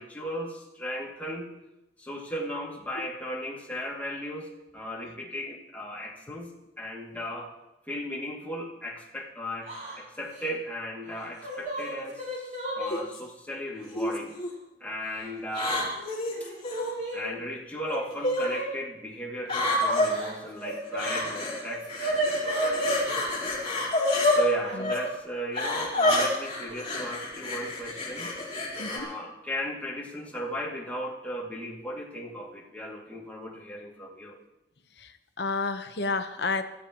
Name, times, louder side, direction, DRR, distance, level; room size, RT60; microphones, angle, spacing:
voice 1, 0.0-1.5 2.0-7.5 7.9-14.3 14.8-15.9 16.4-16.5 16.8-23.8 24.3-28.3 28.9-34.4, equal, 10° left, -3 dB, 2.5 m, -36 dB
Yell / Crying sobbing, 9.6-10.0 10.3-10.4 11.2-13.0 13.9-14.0 15.0-15.6 15.9-17.2 18.4-18.7 19.8-21.2 21.5-23.0 24.6-24.8 26.0-26.4 26.7-26.9 28.0-28.1 28.5-28.8, right 1 dB, 45° right, 6.7 m, -33 dB
sound 1, 12.9-13.2 14.0-14.5 15.5-16.9 17.9-18.5 19.5-20.1 21.0-21.6 21.9-24.4 24.8-25.0 25.5-29.0, left 2 dB, 30° left, 4.1 m, -28 dB
voice 2, 35.0-36.7, left 3 dB, 70° left, 8 dB, 1.1 m, -31 dB
24.5 x 15.0 x 3.1 m, 0.94 s
head